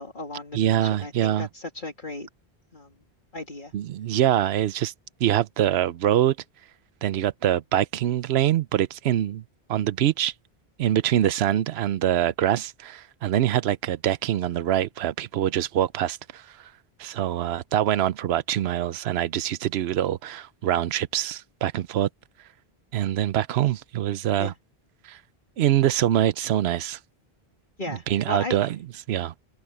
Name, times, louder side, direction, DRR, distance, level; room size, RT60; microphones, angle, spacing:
voice 1, 0.0-2.3 2.7-2.9 3.3-3.7 24.4-24.5 27.8-28.6, left 2 dB, 50° left, 2.8 m, -36 dB
voice 2, 0.5-1.5 3.7-4.9 5.2-6.4 7.0-9.4 9.7-10.3 10.8-16.4 17.0-22.1 22.9-24.5 25.0-25.2 25.6-27.0 27.9-28.8 29.1-29.3, right 11 dB, 80° right, 0.9 m, -24 dB
omnidirectional pair, 1.1 m